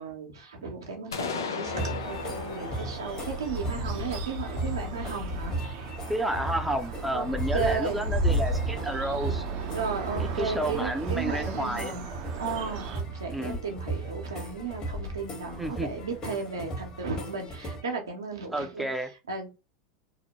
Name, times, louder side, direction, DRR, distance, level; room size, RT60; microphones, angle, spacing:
voice 1, 0.0-5.6 7.1-7.3 7.5-8.0 9.7-12.0 12.4-18.9 19.3-19.5, right 5 dB, 85° right, 0.7 m, -34 dB
sound 1, 1.1-4.9, left 5 dB, 85° left, 0.5 m, -37 dB
sound 2, 1.6-17.8, right 1 dB, 35° left, 1.1 m, -34 dB
sound 3, 2.0-13.0, right 6 dB, 55° right, 0.5 m, -38 dB
voice 2, 6.1-9.4 10.2-12.0 13.3-13.6 15.6-15.9 18.5-19.1, right 1 dB, 5° right, 0.5 m, -31 dB
2.7 x 2.1 x 2.9 m
hypercardioid pair, 90°, 2 cm